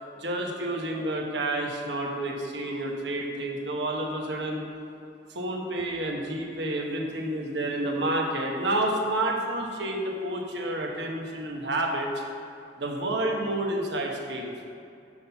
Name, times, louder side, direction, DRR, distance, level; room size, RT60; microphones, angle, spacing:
voice 1, 0.2-4.6 5.3-12.1 12.8-14.5, right 1 dB, 80° right, 0 dB, 1.3 m, -29 dB
7.1 x 6.4 x 5.7 m, 2.6 s
head